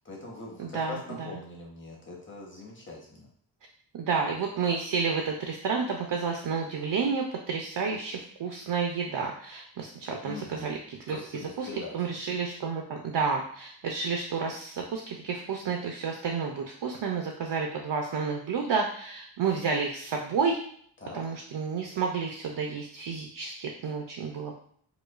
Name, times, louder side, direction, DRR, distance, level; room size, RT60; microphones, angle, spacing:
voice 1, 0.0-3.3 10.3-10.7 11.1-11.9 21.0-21.2, left 3 dB, 25° left, -3 dB, 1.0 m, -42 dB
voice 2, 0.6-1.4 3.9-11.2 11.6-20.6 21.1-24.5, right 5 dB, 65° right, 1 dB, 0.5 m, -30 dB
4.9 x 2.2 x 2.4 m, 0.62 s
wide cardioid pair, 140°, 45 cm